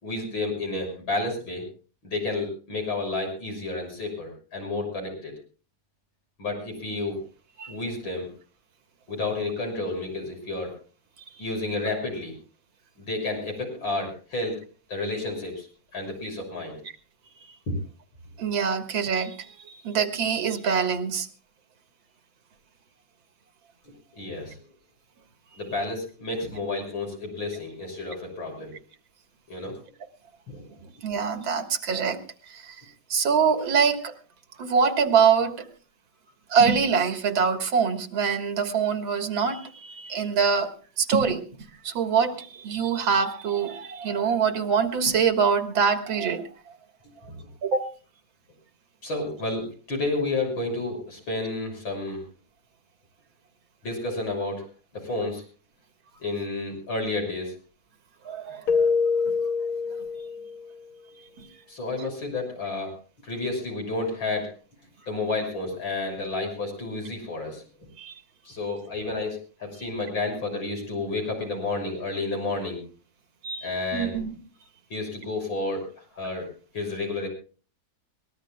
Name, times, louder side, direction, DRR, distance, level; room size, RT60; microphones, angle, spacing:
voice 1, 0.0-1.6 2.0-5.3 6.4-7.2 7.7-8.3 9.1-10.7 11.4-12.3 13.0-14.6 14.9-15.7 15.9-16.8 24.1-24.6 25.6-28.7 29.5-29.8 30.5-30.7 49.0-52.2 53.8-54.7 54.9-55.4 56.2-57.5 61.7-63.0 63.2-64.5 65.1-67.6 68.5-72.8 73.6-74.2 74.9-75.9 76.1-76.5 76.7-77.3, left 2 dB, 85° left, 2 dB, 7.5 m, -30 dB
voice 2, 18.4-21.3 30.8-32.2 32.5-32.8 33.1-34.1 34.6-35.7 36.5-41.4 41.8-46.5 47.6-47.9 58.3-59.0 61.4-61.5 68.0-68.1 73.4-74.4, right 6 dB, 85° right, 7 dB, 2.3 m, -24 dB
Keyboard (musical), 58.7-60.7, left 5 dB, 55° left, 1.1 m, -25 dB
23.5 x 19.5 x 2.2 m, 0.37 s
omnidirectional pair, 2.1 m